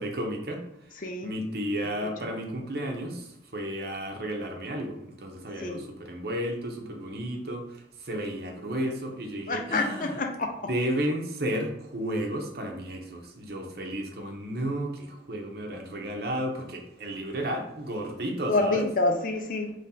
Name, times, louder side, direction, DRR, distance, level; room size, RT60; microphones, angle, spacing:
voice 1, 0.0-10.2 10.7-18.9, right 1 dB, 55° right, 2 dB, 0.8 m, -33 dB
voice 2, 9.5-10.5 18.5-19.7, left 2 dB, 45° left, 4 dB, 0.5 m, -27 dB
4.2 x 3.3 x 3.8 m, 0.83 s
head